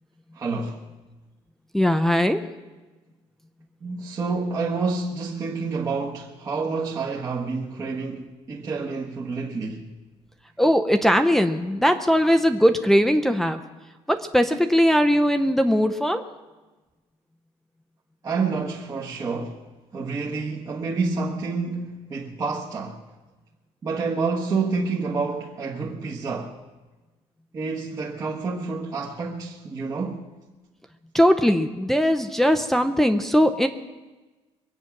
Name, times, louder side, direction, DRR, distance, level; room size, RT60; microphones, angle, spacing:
voice 1, 0.3-0.8 3.8-9.9 18.2-19.6 19.9-23.0 23.8-26.5 27.5-30.2, right 4 dB, 30° right, 1.3 m, -28 dB
voice 2, 1.7-2.5 10.6-13.6 14.1-16.2 31.1-33.7, equal, 5° left, 0.6 m, -20 dB
23.0 x 8.8 x 5.9 m
cardioid pair, 150°, 11 cm